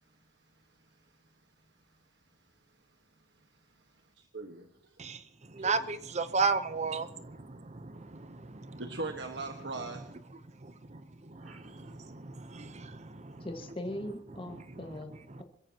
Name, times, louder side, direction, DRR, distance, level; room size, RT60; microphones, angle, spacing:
voice 1, 0.5-1.1 3.5-5.0 5.6-5.7 8.8-10.0 11.4-11.6, right 3 dB, 75° right, 1.5 m, -42 dB
voice 2, 5.5-8.8 10.9-11.0 11.3-13.5, right 4 dB, 40° right, 0.9 m, -34 dB
voice 3, 13.4-15.4, left 1 dB, 30° left, 1.7 m, -40 dB
26.0 x 15.0 x 3.0 m
head